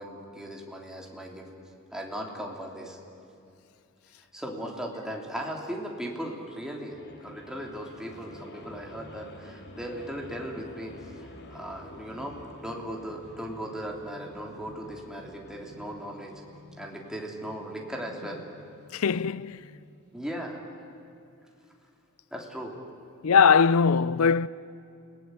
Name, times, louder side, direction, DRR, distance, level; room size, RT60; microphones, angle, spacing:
voice 1, 0.0-1.5 1.9-3.0 4.3-16.4 16.8-18.4 20.1-20.6 22.3-22.8, equal, 5° right, 3.1 m, -38 dB
sound 1, 6.8-20.1, left 1 dB, 50° left, 2.5 m, -49 dB
voice 2, 18.9-19.6 23.2-24.5, left 6 dB, 75° left, 0.5 m, -21 dB
30.0 x 18.5 x 9.1 m
head